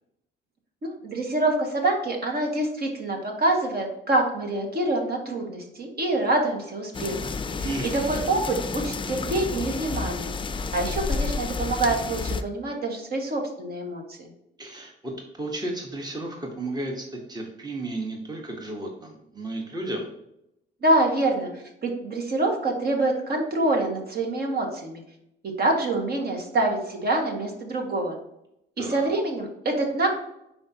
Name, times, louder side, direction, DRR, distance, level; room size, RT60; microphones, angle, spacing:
voice 1, 0.8-7.7 8.1-10.3 10.7-14.3 20.8-25.0 25.4-28.2 28.8-30.1, right 2 dB, 50° right, 1 dB, 1.8 m, -26 dB
sound 1, 6.9-12.4, left 4 dB, 25° left, 0.5 m, -30 dB
voice 2, 7.6-8.2 14.6-20.1 28.8-29.1, right 2 dB, 20° right, 1 dB, 1.2 m, -33 dB
10.0 x 4.4 x 2.8 m, 0.81 s
cardioid pair, 90°, 20 cm